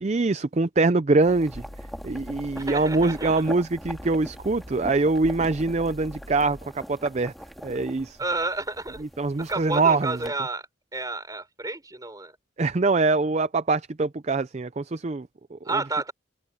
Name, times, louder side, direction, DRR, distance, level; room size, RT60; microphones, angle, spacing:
voice 1, 0.0-1.6 2.0-7.3 7.6-8.2 9.2-10.2 12.6-15.8, right 3 dB, 35° right, 0.5 m, -24 dB
sound 1, 1.2-10.3, equal, ahead, 1.9 m, -42 dB
sound 2, 1.3-6.7, equal, 60° left, 2.9 m, -44 dB
voice 2, 2.6-3.4 8.2-9.0 9.5-10.7 10.9-12.4 15.6-16.1, right 3 dB, 20° right, 4.0 m, -30 dB
head